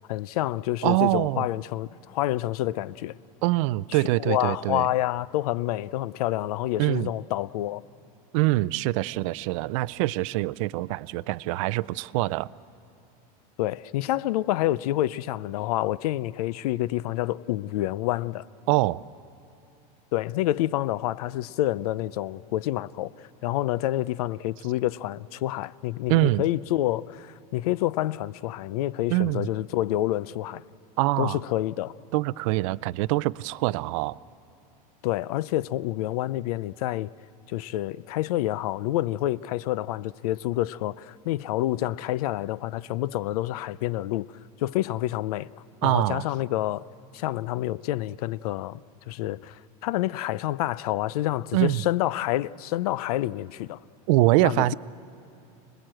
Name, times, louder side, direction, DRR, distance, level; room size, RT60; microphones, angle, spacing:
voice 1, 0.1-3.2 3.9-7.8 13.6-18.5 20.1-30.6 31.2-31.9 35.0-37.1 37.5-44.3 44.6-45.5 45.8-46.8 47.1-53.8 54.4-54.7, left 15 dB, 80° left, 0.5 m, -28 dB
voice 2, 0.8-1.5 3.4-4.9 6.8-7.1 8.3-12.5 18.7-19.0 26.1-26.5 29.1-29.5 31.0-31.4 32.1-34.2 45.8-46.3 51.5-51.8 54.1-54.7, right 19 dB, 60° right, 0.4 m, -24 dB
26.5 x 20.5 x 7.7 m
supercardioid pair, 160°, 19 cm